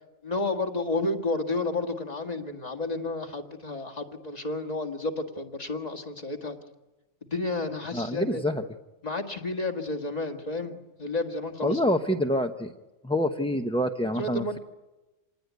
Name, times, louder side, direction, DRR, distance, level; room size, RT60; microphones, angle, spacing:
voice 1, 0.2-6.6 7.3-8.4 9.0-11.8 14.2-14.6, left 2 dB, 30° left, 5 dB, 2.0 m, -31 dB
voice 2, 7.9-8.6 11.6-12.7 13.0-14.6, equal, 5° left, 4 dB, 0.6 m, -26 dB
27.0 x 19.5 x 9.4 m, 1.1 s
omnidirectional pair, 1.3 m